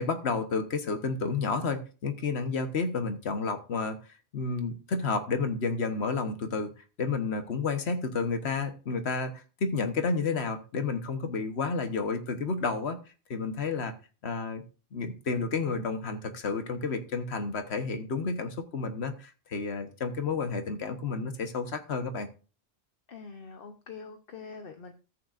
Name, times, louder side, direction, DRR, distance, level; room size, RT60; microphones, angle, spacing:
voice 1, 0.0-4.0 4.3-6.7 7.0-13.0 13.3-13.9 14.2-14.6 14.9-22.3, left 4 dB, 90° left, 1.4 m, -31 dB
voice 2, 23.1-24.9, left 5 dB, 60° left, 1.1 m, -44 dB
14.0 x 9.0 x 2.5 m
omnidirectional pair, 1.1 m